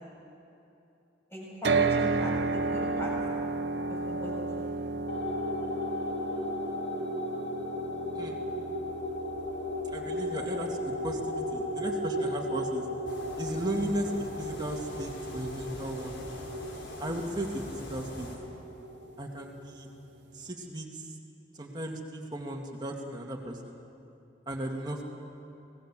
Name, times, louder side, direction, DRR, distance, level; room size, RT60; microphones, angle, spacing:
voice 1, 1.3-3.1 3.9-4.6, equal, 15° left, -5 dB, 7.3 m, -38 dB
sound 1, 1.6-15.8, right 3 dB, 65° right, 0.7 m, -34 dB
sound 2, 5.1-19.8, left 1 dB, 60° left, 2.6 m, -36 dB
voice 2, 9.9-12.9 13.4-16.2 17.0-18.3 19.2-19.9 20.3-21.1 21.6-23.8 24.5-25.0, right 1 dB, 20° right, 0 dB, 2.2 m, -36 dB
sound 3, 13.1-18.4, left 1 dB, 80° left, 3.8 m, -44 dB
27.5 x 19.0 x 7.6 m, 2.8 s
head